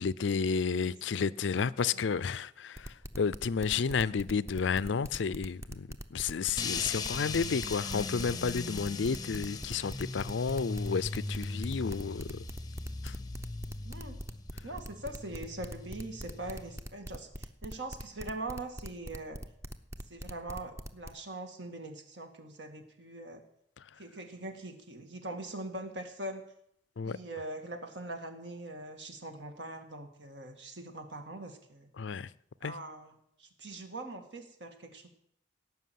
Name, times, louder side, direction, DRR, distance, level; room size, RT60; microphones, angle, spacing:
voice 1, 0.0-12.5 13.0-13.2 23.8-24.0 27.0-27.2 32.0-32.3 32.6-32.7, left 5 dB, 75° left, 0.5 m, -32 dB
voice 2, 0.8-1.3 1.9-2.0 13.8-14.2 14.6-19.4 20.1-23.4 24.0-26.5 27.0-31.9 32.6-35.1, right 2 dB, 65° right, 2.1 m, -42 dB
sound 1, 2.8-21.1, equal, 15° right, 0.7 m, -42 dB
sound 2, 6.6-16.8, left 3 dB, 20° left, 0.7 m, -39 dB
17.5 x 6.0 x 9.4 m
head